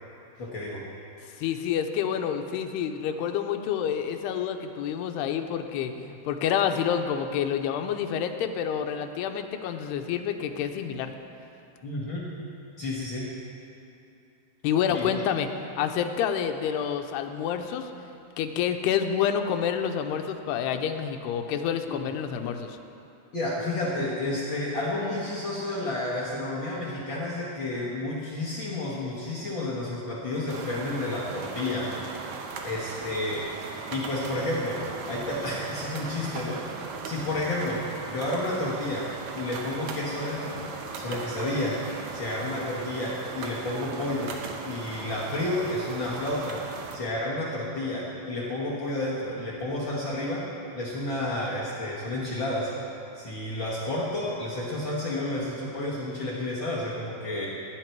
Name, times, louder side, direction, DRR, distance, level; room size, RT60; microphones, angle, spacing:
voice 1, 0.4-0.8 11.8-12.3 12.8-13.3 14.9-15.1 21.9-22.0 23.3-31.9 32.6-33.6 33.9-36.7 37.0-39.1 39.3-40.7 41.0-41.8 42.1-44.4 44.6-46.6 46.9-52.7 53.1-57.5, left 1 dB, 65° left, -6 dB, 1.2 m, -31 dB
voice 2, 1.4-11.1 14.6-15.5 15.8-17.9 18.4-22.8, left 8 dB, 90° left, 6 dB, 2.8 m, -28 dB
sound 1, 30.5-47.0, right 4 dB, 80° right, 1.7 m, -38 dB
17.0 x 9.9 x 4.6 m, 2.7 s
omnidirectional pair, 4.6 m